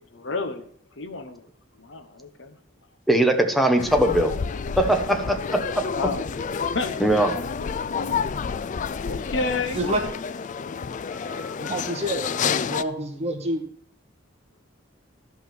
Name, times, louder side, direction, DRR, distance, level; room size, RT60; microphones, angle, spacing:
voice 1, 0.1-0.7 1.0-1.4 1.8-2.6 5.9-6.3 6.7-6.9 7.4-8.1 9.0-9.8 11.1-11.8 12.2-12.5, left 3 dB, 70° left, 9 dB, 1.1 m, -32 dB
voice 2, 3.1-4.3 4.8-5.4 7.0-7.3, right 1 dB, ahead, 4 dB, 1.2 m, -20 dB
sound 1, 3.8-12.8, left 6 dB, 40° left, 0.4 m, -29 dB
voice 3, 11.6-13.6, right 1 dB, 35° right, 3 dB, 1.7 m, -28 dB
12.5 x 5.6 x 6.1 m, 0.62 s
head